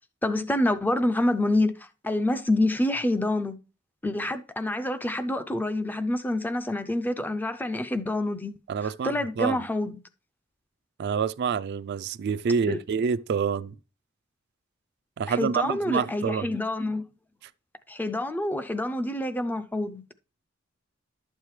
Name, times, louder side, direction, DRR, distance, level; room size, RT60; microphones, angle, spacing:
voice 1, 0.2-3.6 4.0-10.0 12.7-12.8 15.3-17.0 17.9-20.0, left 1 dB, 10° left, 0.4 m, -27 dB
voice 2, 8.7-9.6 11.0-13.7 15.2-16.5, right 6 dB, 55° right, 0.3 m, -27 dB
11.5 x 7.3 x 3.2 m
head